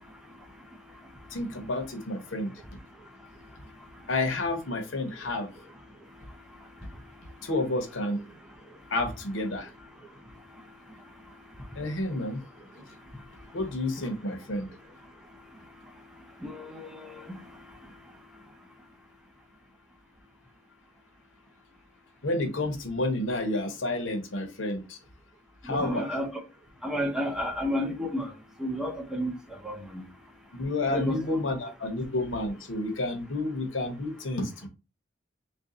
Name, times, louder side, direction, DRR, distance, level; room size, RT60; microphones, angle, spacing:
voice 1, 1.3-2.5 4.1-5.5 7.4-8.2 8.9-9.7 11.8-12.4 13.5-14.7 22.2-25.0 25.6-26.2 30.5-34.7, left 2 dB, 80° left, 0.8 m, -30 dB
voice 2, 16.4-17.3 25.7-26.3 26.8-28.3 28.6-29.3 29.6-30.0 30.9-31.2, equal, 5° right, 0.5 m, -31 dB
3.1 x 2.6 x 3.7 m
head